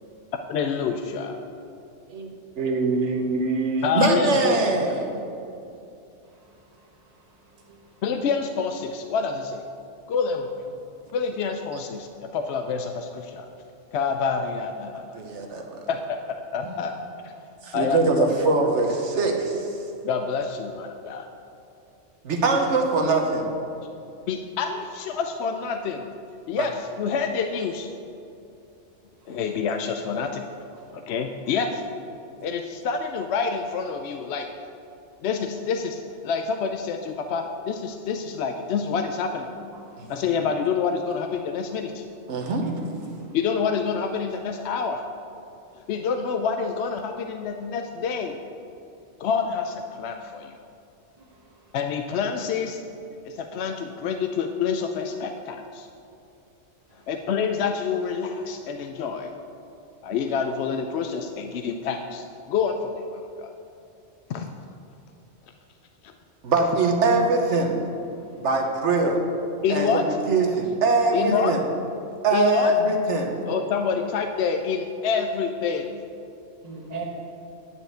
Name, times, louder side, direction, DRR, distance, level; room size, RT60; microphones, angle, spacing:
voice 1, 0.5-1.4 3.8-4.9 8.0-9.6 10.1-10.5 11.1-13.5 13.9-15.2 15.9-17.0 17.7-18.4 20.0-21.3 24.3-26.1 26.5-27.9 29.3-30.4 30.9-31.8 32.4-34.5 35.2-39.5 40.1-42.0 43.3-45.0 45.9-48.4 49.2-50.5 51.7-52.8 53.2-55.9 57.1-59.4 60.0-63.5 64.3-64.5 66.0-66.1 69.6-70.1 71.1-71.5 72.3-72.7 73.5-76.0, left 6 dB, 70° left, 5 dB, 0.8 m, -27 dB
voice 2, 2.6-5.2 15.1-15.9 17.6-19.7 22.2-23.5 26.5-26.7 40.0-40.1 42.3-42.6 66.4-67.8 68.3-69.2 69.7-69.9 70.3-71.6 72.2-73.4, right 3 dB, 70° right, 2 dB, 1.3 m, -22 dB
voice 3, 6.3-7.2 7.5-8.0 16.6-16.8 30.7-30.9 39.7-40.0 42.6-42.8 43.1-43.3 51.2-51.8 57.0-57.1 76.6-77.0, right 2 dB, 35° right, -2 dB, 1.2 m, -41 dB
9.9 x 4.5 x 7.8 m, 2.6 s
omnidirectional pair, 1.2 m